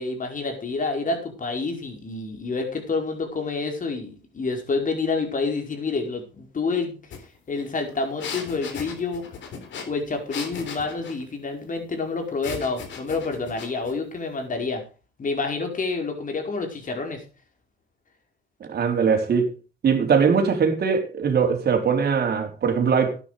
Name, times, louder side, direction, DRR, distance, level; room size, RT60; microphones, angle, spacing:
voice 1, 0.0-7.0 7.5-9.3 9.9-14.8 15.2-17.2, left 4 dB, 40° left, 5.0 m, -28 dB
sound 1, 7.1-7.2 7.5-11.2 12.4-14.0, left 6 dB, 70° left, 3.8 m, -37 dB
voice 2, 18.7-19.5 19.8-23.2, right 6 dB, 55° right, 4.1 m, -21 dB
12.5 x 10.0 x 5.0 m
cardioid pair, 90°, 20 cm